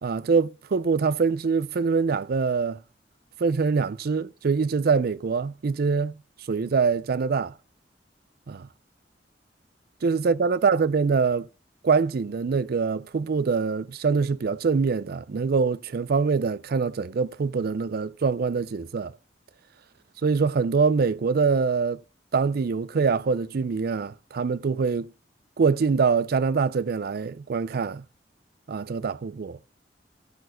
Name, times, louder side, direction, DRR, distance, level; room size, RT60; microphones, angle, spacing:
voice 1, 0.0-2.8 3.4-6.1 6.5-7.5 8.5-8.7 10.0-11.5 11.8-19.1 20.2-22.0 22.3-25.1 25.6-28.0 28.7-29.6, right 5 dB, 60° right, 0.4 m, -24 dB
12.5 x 4.6 x 6.2 m
head